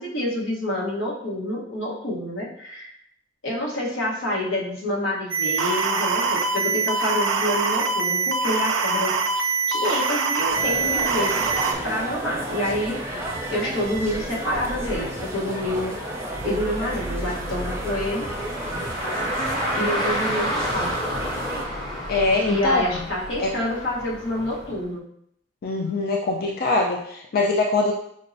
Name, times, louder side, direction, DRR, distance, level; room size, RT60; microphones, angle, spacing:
voice 1, 0.0-2.9 3.4-9.2 9.7-11.5 11.8-13.0 13.5-16.0 16.4-18.3 19.7-21.0 22.5-25.0, left 1 dB, 85° left, -4 dB, 1.0 m, -27 dB
sound 1, 5.3-11.7, right 4 dB, 85° right, 0.4 m, -23 dB
sound 2, 10.5-21.6, right 1 dB, 15° right, 0.5 m, -31 dB
Car, 16.2-24.8, equal, 25° left, 0.8 m, -31 dB
voice 2, 22.1-23.0 23.4-23.5 25.6-27.9, left 3 dB, 50° left, 0 dB, 0.3 m, -23 dB
5.2 x 2.0 x 2.6 m, 0.71 s
head